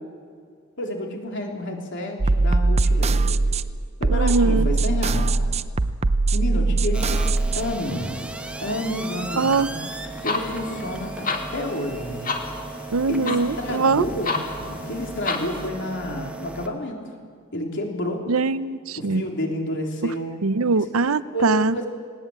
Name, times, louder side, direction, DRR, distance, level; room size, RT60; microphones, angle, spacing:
voice 1, 0.8-3.4 4.0-5.4 6.3-7.3 7.6-8.1 8.6-9.8 10.2-12.3 13.1-14.4 14.7-17.0 17.5-18.3 19.0-20.5 21.3-21.9, left 1 dB, 60° left, 1 dB, 3.7 m, -30 dB
sound 1, 2.2-7.6, right 3 dB, 30° right, 0.5 m, -21 dB
voice 2, 4.1-4.7 9.4-9.7 12.9-14.0 18.3-19.2 20.0-20.1 20.4-21.7, right 4 dB, 90° right, 15 dB, 0.7 m, -22 dB
sound 2, 6.9-16.7, right 2 dB, 5° right, 1.2 m, -36 dB
sound 3, 10.1-15.7, left 3 dB, 40° left, 2.1 m, -32 dB
19.0 x 19.0 x 8.8 m, 2.1 s
head